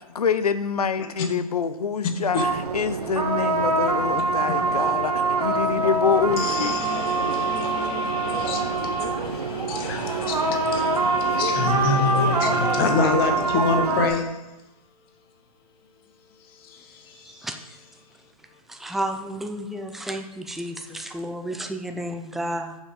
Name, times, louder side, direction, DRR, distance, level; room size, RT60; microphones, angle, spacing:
voice 1, 0.1-6.8, left 5 dB, 80° left, 12 dB, 0.7 m, -26 dB
sound 1, 2.4-14.1, right 3 dB, 90° right, 1.3 m, -24 dB
voice 2, 6.4-14.2 16.6-17.4, left 4 dB, 40° left, 4 dB, 1.4 m, -27 dB
voice 3, 17.3-17.6 18.7-22.8, right 1 dB, ahead, 5 dB, 0.4 m, -31 dB
6.7 x 5.5 x 4.9 m, 0.98 s
hypercardioid pair, 135°, 19 cm